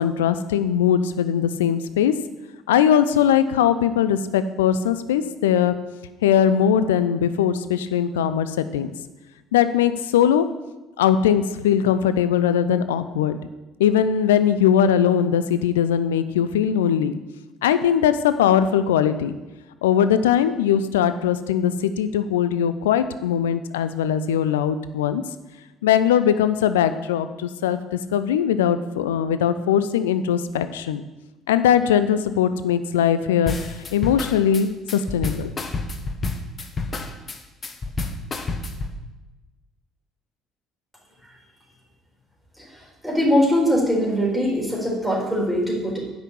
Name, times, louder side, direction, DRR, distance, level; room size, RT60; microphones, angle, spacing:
voice 1, 0.0-2.1 2.7-5.7 6.2-8.9 9.5-10.4 11.0-13.4 13.8-17.1 17.6-19.4 19.8-25.2 25.8-27.8 28.1-31.0 31.5-33.5 33.9-35.5, left 9 dB, 75° left, 12 dB, 0.5 m, -20 dB
sound 1, 33.5-39.0, left 3 dB, 35° left, 1.2 m, -29 dB
voice 2, 43.0-46.0, equal, ahead, -3 dB, 4.3 m, -21 dB
9.8 x 6.1 x 7.1 m, 1.1 s
figure-of-eight pair, 55°, 0 cm